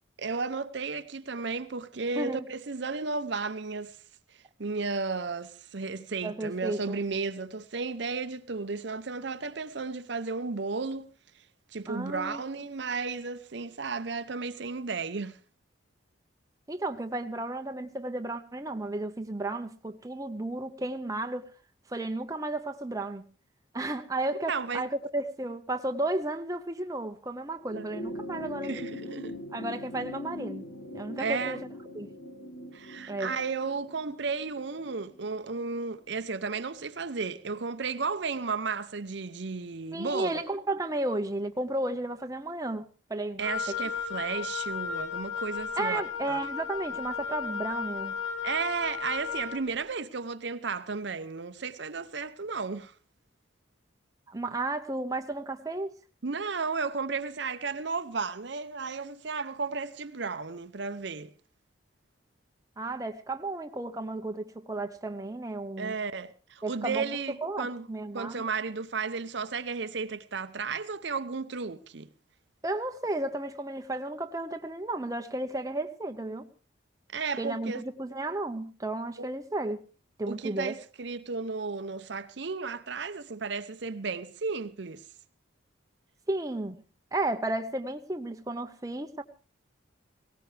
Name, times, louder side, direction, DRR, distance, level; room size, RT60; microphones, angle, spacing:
voice 1, 0.2-4.0 4.6-11.1 11.7-15.4 24.5-24.8 27.7-27.9 28.6-29.4 31.2-31.6 32.7-40.4 43.4-46.0 46.3-46.4 48.4-52.9 56.2-61.3 65.8-67.9 68.1-72.1 77.1-77.8 79.2-79.3 80.3-85.0, right 4 dB, 60° right, 0.7 m, -33 dB
voice 2, 2.2-2.5 6.2-7.0 11.9-12.4 16.7-21.5 21.9-23.2 23.7-28.8 29.5-30.7 30.9-31.6 31.9-32.1 33.1-33.3 39.9-43.8 45.8-48.1 54.3-55.9 62.8-66.0 66.6-67.1 67.4-68.5 72.6-76.5 77.4-79.8 80.2-80.7 86.3-86.8 87.1-89.2, right 2 dB, 15° right, 0.8 m, -33 dB
sound 1, 27.6-36.3 37.5-37.6, left 1 dB, 90° left, 3.0 m, -42 dB
Wind instrument woodwind instrument, 43.4-49.6, left 6 dB, 70° left, 1.7 m, -34 dB
18.5 x 17.5 x 3.3 m
head